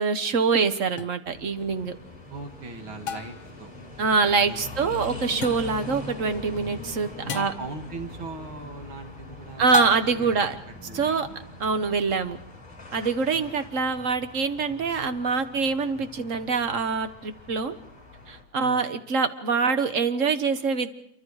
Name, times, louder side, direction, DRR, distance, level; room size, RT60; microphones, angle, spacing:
voice 1, 0.0-2.0 4.0-7.5 9.6-10.6 10.9-11.3 11.6-12.4 12.9-17.8 18.3-20.9, right 5 dB, 45° right, 9 dB, 1.4 m, -25 dB
sound 1, 1.0-1.1 3.1-3.6 5.4-5.8 7.3-7.7 9.7-10.4, left 8 dB, 80° left, 2.0 m, -33 dB
sound 2, 1.3-18.4, left 2 dB, 20° left, 5.2 m, -42 dB
voice 2, 2.3-3.7 4.1-4.6 7.2-10.4 10.9-11.4 13.3-13.5 18.6-18.8, right 3 dB, 85° right, 5 dB, 2.9 m, -40 dB
27.5 x 24.5 x 4.9 m, 0.76 s
omnidirectional pair, 2.2 m